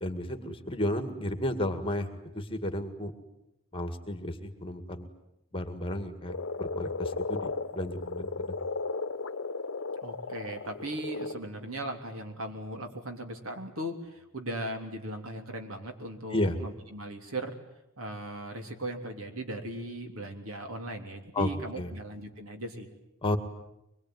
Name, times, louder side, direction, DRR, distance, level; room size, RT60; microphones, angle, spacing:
voice 1, 0.0-3.1 3.7-5.1 5.5-8.6 16.3-16.5 21.3-21.5 21.8-21.9 23.2-23.4, left 1 dB, 25° left, 9 dB, 2.0 m, -33 dB
Frog, 6.3-11.4, left 3 dB, 65° left, 1.0 m, -35 dB
voice 2, 10.0-17.5 18.0-22.9, right 1 dB, 80° right, 5 dB, 3.3 m, -38 dB
24.0 x 22.5 x 9.5 m, 0.88 s
head